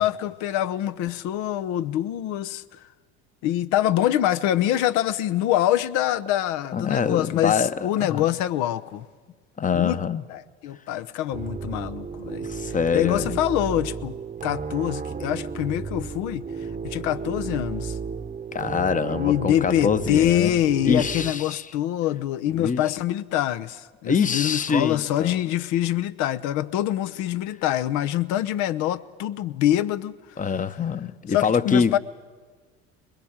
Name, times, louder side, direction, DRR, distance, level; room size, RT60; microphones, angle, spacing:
voice 1, 0.0-2.8 3.4-9.1 9.7-10.0 10.3-12.5 12.9-14.1 14.4-16.4 16.8-18.0 19.1-30.4 31.3-32.0, left 12 dB, 65° left, 0.9 m, -25 dB
voice 2, 6.7-8.2 9.6-10.2 12.4-13.4 18.5-20.5 20.8-21.7 22.5-22.8 24.0-25.5 30.4-32.0, left 6 dB, 25° left, 1.0 m, -25 dB
sound 1, 11.3-21.3, right 5 dB, 25° right, 1.0 m, -33 dB
22.0 x 21.0 x 8.8 m
hypercardioid pair, 75°, 32 cm